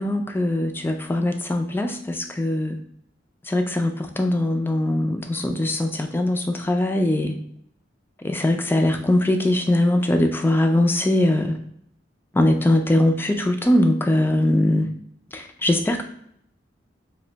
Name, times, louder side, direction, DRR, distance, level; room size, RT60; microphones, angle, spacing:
voice 1, 0.0-2.8 3.5-7.4 8.2-11.5 12.3-14.9 15.3-16.0, left 1 dB, 10° left, 4 dB, 0.3 m, -21 dB
2.5 x 2.1 x 3.9 m, 0.72 s
head